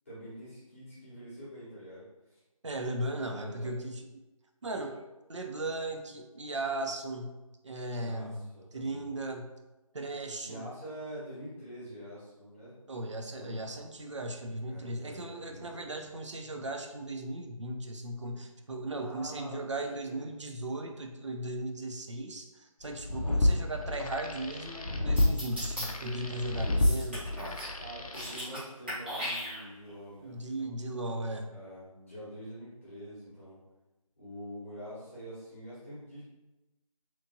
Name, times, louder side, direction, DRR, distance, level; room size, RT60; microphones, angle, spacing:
voice 1, 0.0-2.4 3.0-3.7 7.9-9.1 10.4-12.7 13.3-13.8 14.6-16.0 19.0-20.2 23.2-23.6 26.3-26.9 27.8-30.7 31.5-33.6 34.2-36.2, equal, 20° left, -12 dB, 0.8 m, -46 dB
voice 2, 2.6-4.0 4.6-5.0 5.3-7.3 7.6-9.5 9.9-10.7 12.9-27.6 30.2-31.5, right 1 dB, 55° right, 4 dB, 0.4 m, -37 dB
sound 1, 22.9-28.4, left 1 dB, 80° left, 0.4 m, -30 dB
sound 2, 25.2-25.8 26.8-27.7 28.0-28.6 28.9-29.9, equal, 15° right, 0.6 m, -37 dB
2.9 x 2.4 x 2.5 m, 1.0 s
figure-of-eight pair, 165°, 18 cm